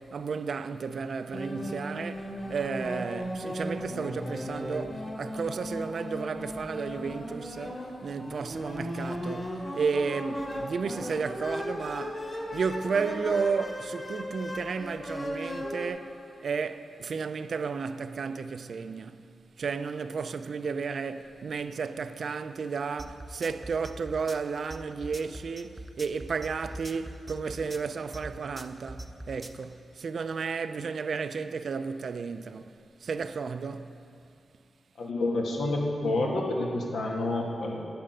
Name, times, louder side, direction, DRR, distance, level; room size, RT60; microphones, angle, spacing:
voice 1, 0.0-12.3 12.5-16.1 16.4-19.2 19.6-32.7 33.0-33.9, right 5 dB, 55° right, 0.4 m, -33 dB
sound 1, 1.3-15.9, equal, 25° left, 1.7 m, -36 dB
sound 2, 23.0-29.6, right 1 dB, 15° right, 0.6 m, -42 dB
voice 2, 35.0-37.9, left 2 dB, 90° left, 2.0 m, -29 dB
10.5 x 8.7 x 9.0 m
wide cardioid pair, 170°, 0 cm